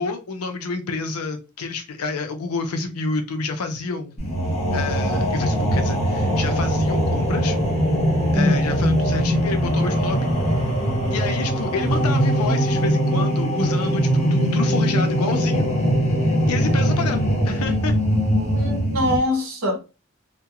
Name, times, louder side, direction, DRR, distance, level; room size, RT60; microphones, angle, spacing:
voice 1, 0.0-4.1 4.7-7.6 8.3-10.3 11.1-15.7 16.5-17.9, left 4 dB, 85° left, 0.5 m, -29 dB
sound 1, 4.2-19.2, equal, 30° left, 0.7 m, -21 dB
voice 2, 18.5-19.8, left 1 dB, 70° right, 0.7 m, -23 dB
2.3 x 2.1 x 2.8 m
head